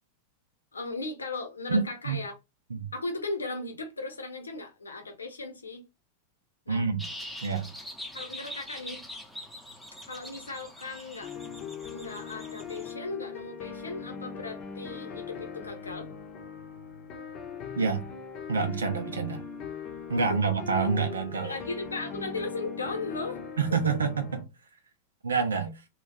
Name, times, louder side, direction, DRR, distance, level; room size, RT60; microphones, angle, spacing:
voice 1, 0.7-2.3 2.9-5.8 6.7-6.8 8.1-9.0 10.1-11.3 11.9-16.1 21.4-23.4, left 3 dB, 75° left, 0.8 m, -37 dB
voice 2, 1.7-2.2 2.7-2.9 6.7-7.0 7.4-7.7 17.7-18.0 18.5-19.4 20.1-21.6 23.6-24.4 25.2-25.8, right 5 dB, 70° right, 0.7 m, -27 dB
sound 1, 7.0-12.9, left 1 dB, ahead, 0.8 m, -43 dB
sound 2, 11.2-24.4, left 6 dB, 35° left, 0.7 m, -40 dB
3.1 x 2.4 x 3.5 m
figure-of-eight pair, 90°, 0 cm